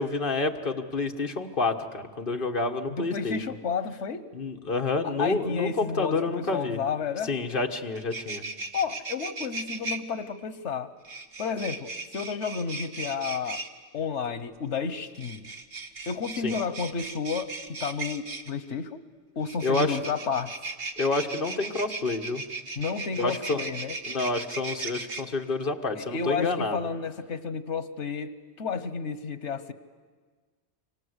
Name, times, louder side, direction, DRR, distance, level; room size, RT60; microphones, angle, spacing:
voice 1, 0.0-3.4 4.3-6.8 7.2-8.4 16.4-16.5 19.6-20.0 21.0-22.4 23.2-23.7 24.1-26.9, left 3 dB, 50° left, 4 dB, 1.7 m, -28 dB
voice 2, 2.9-4.3 5.0-7.4 8.7-10.9 11.4-13.6 13.9-15.5 16.1-19.0 19.4-20.5 22.8-24.0 25.9-29.7, left 5 dB, 85° left, 13 dB, 1.4 m, -31 dB
sound 1, 7.6-7.7 7.9-10.0 11.0-13.7 15.1-18.5 19.4-25.2, right 3 dB, 60° right, 1.6 m, -37 dB
28.5 x 25.0 x 8.1 m, 1.5 s
omnidirectional pair, 1.2 m